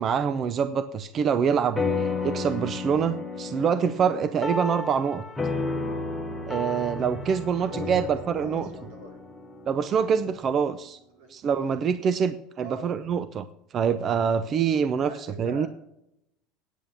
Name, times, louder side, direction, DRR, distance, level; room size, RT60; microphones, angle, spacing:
voice 1, 0.0-5.2 6.4-8.7 9.7-11.0 11.3-13.5 13.7-15.1 15.4-15.7, right 7 dB, 35° right, 13 dB, 0.6 m, -25 dB
sound 1, 1.8-10.5, left 3 dB, 5° left, 1.2 m, -32 dB
voice 2, 7.4-8.1 8.4-9.2 11.1-11.3 12.6-12.9 15.0-15.7, right 1 dB, 85° right, 1 dB, 4.0 m, -43 dB
9.2 x 8.9 x 6.9 m, 0.80 s
supercardioid pair, 130°, 0 cm